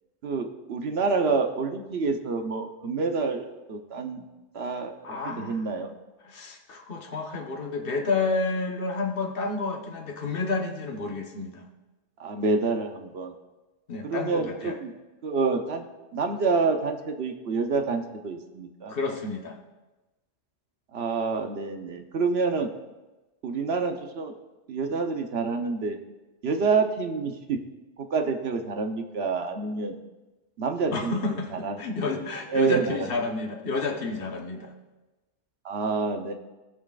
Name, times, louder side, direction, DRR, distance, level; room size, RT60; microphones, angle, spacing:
voice 1, 0.2-4.2 4.5-5.9 12.2-13.3 14.0-14.9 15.2-15.8 16.1-18.9 20.9-22.7 23.4-24.3 24.7-26.0 26.4-27.6 28.0-30.0 30.6-31.8 32.5-33.1 35.6-36.3, right 4 dB, 60° right, 5 dB, 1.1 m, -27 dB
voice 2, 5.0-5.6 6.2-11.7 13.9-14.8 18.9-19.6 30.9-34.7, left 3 dB, 55° left, 2 dB, 1.2 m, -30 dB
18.5 x 6.2 x 2.4 m, 1.1 s
omnidirectional pair, 1.2 m